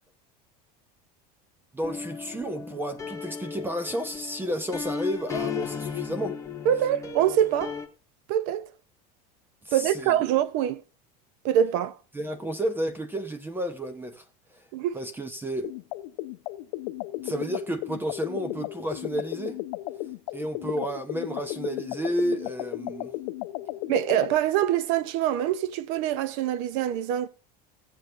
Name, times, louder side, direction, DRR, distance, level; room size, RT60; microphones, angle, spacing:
voice 1, 1.7-6.4 9.6-10.2 12.1-14.2 14.5-14.6 14.9-15.7 17.2-19.6 20.3-23.1, right 1 dB, 10° right, 0.8 m, -31 dB
sound 1, 1.8-7.9, left 6 dB, 15° left, 1.4 m, -35 dB
voice 2, 6.6-7.7 8.3-8.7 9.7-10.8 11.4-12.0 14.7-15.0 23.9-27.3, right 10 dB, 65° right, 0.8 m, -24 dB
sound 2, 15.6-24.4, left 17 dB, 75° left, 0.7 m, -35 dB
17.5 x 7.6 x 2.5 m
supercardioid pair, 140°, 20 cm